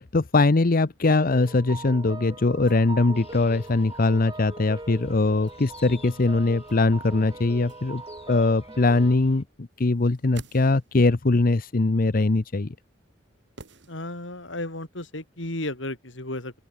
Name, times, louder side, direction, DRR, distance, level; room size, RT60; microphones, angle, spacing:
voice 1, 0.0-8.0 8.3-12.7, left 3 dB, 50° left, 0.7 m, -22 dB
sound 1, 1.1-9.2, right 2 dB, 25° right, 2.9 m, -41 dB
sound 2, 3.1-9.4, left 3 dB, 35° left, 6.8 m, -52 dB
sound 3, 10.0-11.2 13.6-14.5 14.7-14.8, right 3 dB, 65° right, 4.0 m, -47 dB
voice 2, 13.9-16.5, left 1 dB, 75° left, 5.7 m, -33 dB
open air
head